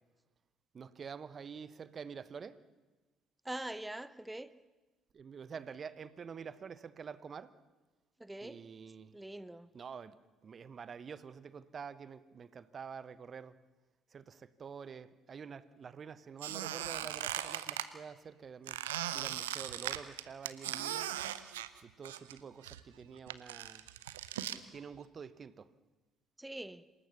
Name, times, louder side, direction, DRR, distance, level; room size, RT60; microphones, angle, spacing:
voice 1, 0.7-2.6 5.1-7.6 8.4-9.2 9.7-13.6 14.1-18.8 19.1-21.1 21.8-23.9 24.7-25.7, right 6 dB, 40° right, 1.1 m, -47 dB
voice 2, 3.4-4.5 8.2-8.6 9.1-9.7 26.4-26.8, right 1 dB, 10° right, 1.0 m, -43 dB
Squeak, 16.4-17.9 18.7-22.4 22.6-24.6, right 12 dB, 75° right, 0.8 m, -39 dB
27.0 x 18.0 x 6.9 m
figure-of-eight pair, 50°, 0 cm